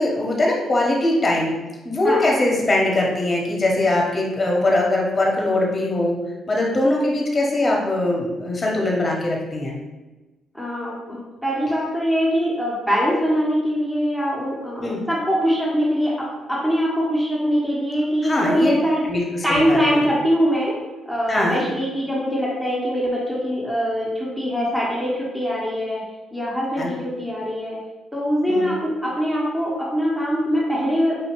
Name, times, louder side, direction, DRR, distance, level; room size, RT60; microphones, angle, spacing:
voice 1, 0.0-1.5 1.8-6.2 6.5-9.8 14.8-15.0 18.2-18.7 19.0-20.1 21.3-21.6 26.8-26.9 28.5-28.7, left 1 dB, 25° left, -2 dB, 1.1 m, -21 dB
voice 2, 2.0-2.4 10.5-19.0 19.4-20.7 21.1-26.0 26.3-27.8 28.1-31.2, equal, ahead, -5 dB, 1.1 m, -23 dB
4.8 x 2.7 x 3.1 m, 1.1 s
cardioid pair, 90°, 0 cm